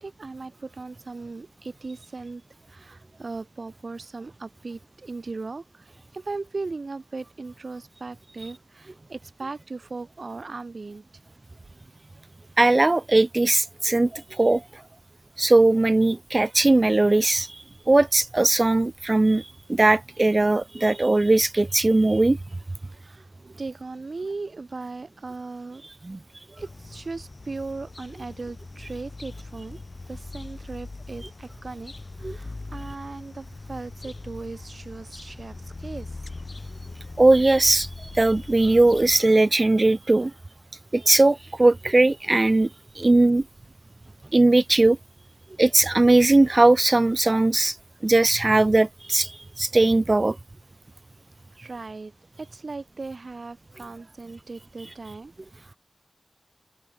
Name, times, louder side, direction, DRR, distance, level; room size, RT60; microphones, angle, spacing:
voice 1, 0.0-2.4 2.7-11.0 22.9-25.9 26.6-29.8 30.1-31.9 32.2-36.2 43.0-43.1 51.5-52.1 52.4-55.8, right 3 dB, 55° right, 6.8 m, -38 dB
voice 2, 12.6-14.6 15.4-22.4 26.0-26.2 32.2-32.4 37.2-40.3 40.9-42.7 43.0-43.4 44.3-45.0 45.6-47.8 48.0-50.4, right 2 dB, 35° right, 1.2 m, -19 dB
sound 1, 26.6-39.2, left 3 dB, 45° left, 5.4 m, -41 dB
open air
wide cardioid pair, 80°, 0 cm